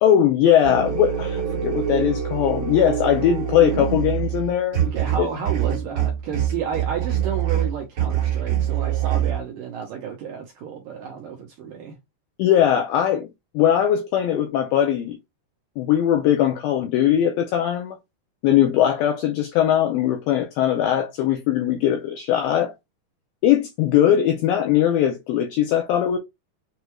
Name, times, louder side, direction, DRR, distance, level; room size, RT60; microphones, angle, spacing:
voice 1, 0.0-4.8 5.2-5.3 12.4-13.3 13.5-15.2 15.8-18.0 18.4-22.7 23.4-26.2, left 10 dB, 90° left, 2.0 m, -20 dB
sound 1, 0.6-9.4, right 10 dB, 55° right, 2.0 m, -25 dB
voice 2, 4.9-12.0, right 7 dB, 80° right, 1.9 m, -31 dB
6.5 x 2.3 x 3.0 m
omnidirectional pair, 4.7 m